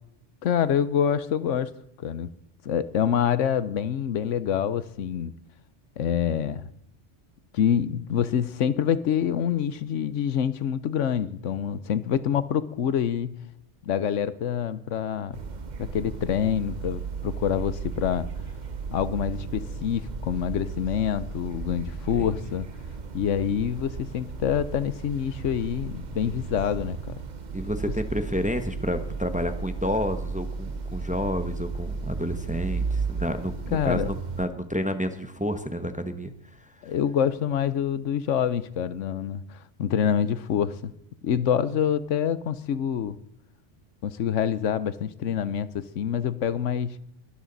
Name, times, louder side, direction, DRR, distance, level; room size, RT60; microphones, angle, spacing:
voice 1, 0.4-1.7 2.0-2.3 2.6-5.3 6.0-6.7 7.5-13.4 13.8-15.4 15.8-18.3 18.9-22.7 23.1-27.2 33.7-34.1 36.8-40.9 41.2-43.2 44.0-47.0, left 8 dB, 85° left, 15 dB, 1.1 m, -26 dB
sound 1, 15.3-34.5, right 4 dB, 40° right, 0.9 m, -34 dB
voice 2, 27.5-36.3 36.6-36.7, equal, 5° right, 9 dB, 0.8 m, -30 dB
21.5 x 12.5 x 4.0 m, 0.76 s
omnidirectional pair, 1.2 m